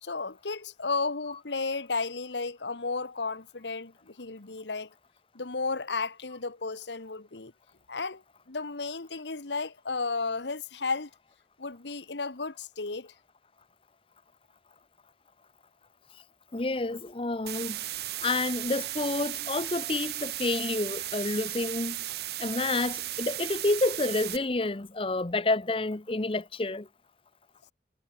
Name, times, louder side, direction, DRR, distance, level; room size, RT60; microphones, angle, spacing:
voice 1, 0.0-4.9 5.3-7.5 7.9-8.2 8.5-11.1 11.6-13.1, left 4 dB, 90° left, 1.5 m, -33 dB
voice 2, 16.5-17.8 18.2-22.0 22.4-26.9, left 2 dB, 30° left, 0.8 m, -29 dB
sound 1, 17.5-24.4, right 14 dB, 65° right, 0.8 m, -35 dB
head